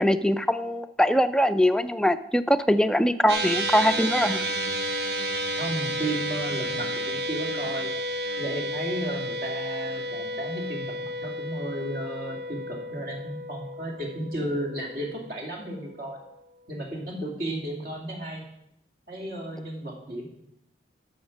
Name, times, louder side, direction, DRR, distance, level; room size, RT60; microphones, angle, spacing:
voice 1, 0.0-4.5, equal, 5° left, 10 dB, 0.4 m, -22 dB
sound 1, 3.3-15.8, right 1 dB, 80° right, 1.1 m, -32 dB
voice 2, 5.5-7.9 8.4-16.2 16.7-18.4 19.1-20.3, right 1 dB, 55° right, 0 dB, 2.6 m, -34 dB
12.5 x 6.4 x 6.0 m, 0.79 s
head